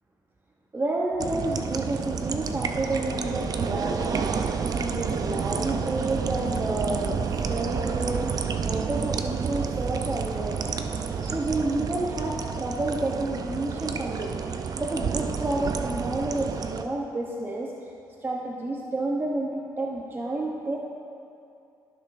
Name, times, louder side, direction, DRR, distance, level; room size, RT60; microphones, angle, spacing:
voice 1, 0.7-4.5 4.7-8.4 8.6-14.3 14.8-17.9 18.2-20.8, right 2 dB, 25° right, -1 dB, 0.8 m, -30 dB
sound 1, 1.2-16.8, right 6 dB, 50° right, 0.5 m, -30 dB
14.0 x 6.5 x 2.6 m, 2.6 s
cardioid pair, 70°, 8 cm